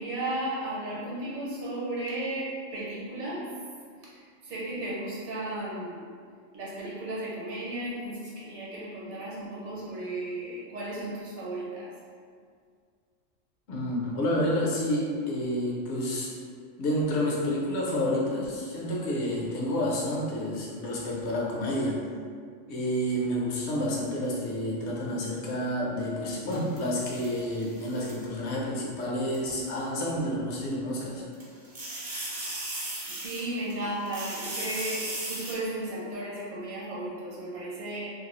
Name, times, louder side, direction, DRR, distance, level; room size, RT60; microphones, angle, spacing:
voice 1, 0.0-3.4 4.0-4.1 4.4-6.0 6.5-11.9 33.1-38.1, right 1 dB, 65° right, -7 dB, 1.1 m, -34 dB
voice 2, 13.7-16.3 16.8-22.0 22.7-31.2, equal, 65° left, -4 dB, 0.8 m, -29 dB
sound 1, 26.5-28.2 29.3-29.4 31.3-33.7 34.1-35.5, right 2 dB, 50° right, 0.6 m, -37 dB
2.5 x 2.3 x 2.9 m, 2.1 s
omnidirectional pair, 1.3 m